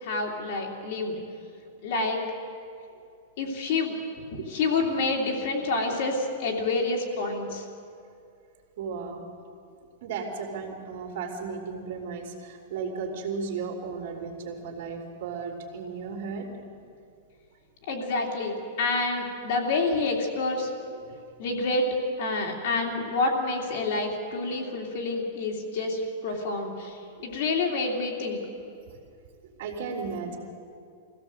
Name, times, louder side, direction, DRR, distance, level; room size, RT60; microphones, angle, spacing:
voice 1, 0.0-1.2 1.8-2.2 3.4-3.9 4.3-7.6 17.9-20.7 21.4-21.9 22.2-28.4, left 3 dB, 45° left, -1 dB, 3.0 m, -28 dB
voice 2, 8.8-9.2 10.0-16.5 20.9-21.0 29.6-30.4, right 5 dB, 45° right, 2 dB, 3.4 m, -35 dB
24.5 x 16.5 x 7.9 m, 2.5 s
supercardioid pair, 180°, 0 cm